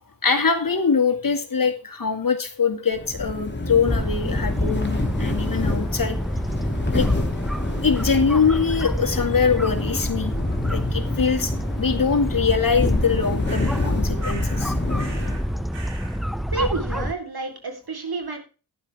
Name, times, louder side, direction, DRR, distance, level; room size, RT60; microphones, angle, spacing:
voice 1, 0.2-6.2 6.9-7.1 7.8-10.3 10.7-14.7, left 5 dB, 50° left, 6 dB, 2.2 m, -23 dB
sound 1, 2.9-15.7, left 2 dB, 25° left, 2.7 m, -28 dB
sound 2, 3.9-17.1, equal, ahead, 0.6 m, -28 dB
sound 3, 13.4-13.9 14.2-14.7 15.0-15.5 15.7-16.2, right 4 dB, 75° right, 2.7 m, -41 dB
voice 2, 16.5-18.4, right 3 dB, 55° right, 4 dB, 3.8 m, -29 dB
11.5 x 10.5 x 3.5 m, 0.33 s
cardioid pair, 50°, 44 cm